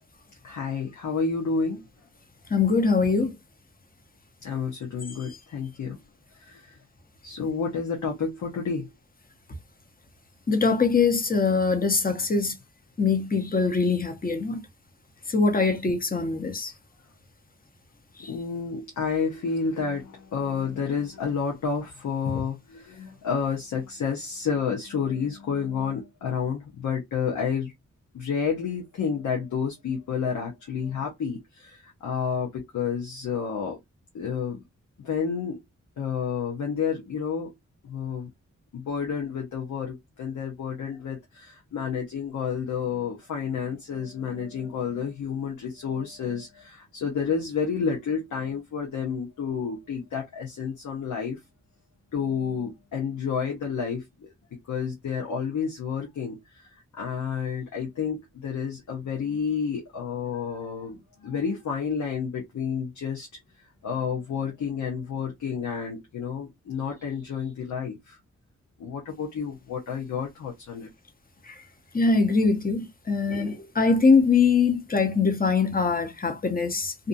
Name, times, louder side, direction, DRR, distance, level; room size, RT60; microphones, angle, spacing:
voice 1, 0.4-1.8 4.4-6.0 6.4-6.7 7.2-8.9 18.3-27.7 28.1-33.8 34.1-34.6 35.0-35.6 36.0-37.5 37.8-38.3 38.7-51.4 52.1-54.3 54.7-56.7 57.0-63.3 63.8-68.2 68.8-70.9, left 6 dB, 90° left, 0.8 m, -30 dB
voice 2, 2.5-3.3 10.5-12.5 13.0-14.6 15.3-16.7 18.2-18.3 71.5-71.6 71.9-77.1, left 4 dB, 30° left, 0.8 m, -23 dB
2.5 x 2.4 x 2.5 m
cardioid pair, 50°, 29 cm